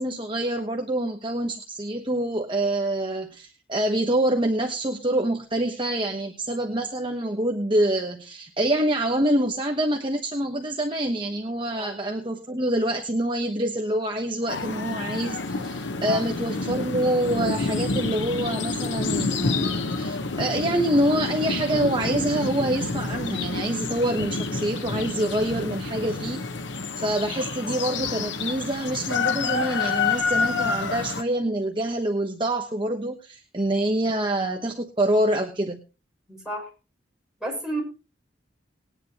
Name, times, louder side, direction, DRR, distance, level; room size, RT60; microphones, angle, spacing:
voice 1, 0.0-26.4 27.0-35.8, right 1 dB, 25° right, 3 dB, 1.1 m, -26 dB
sound 1, 14.5-31.2, left 4 dB, 75° left, 1.0 m, -28 dB
voice 2, 36.3-36.7 37.4-37.8, right 1 dB, 5° right, -3 dB, 6.3 m, -31 dB
20.0 x 10.0 x 2.9 m, 0.32 s
head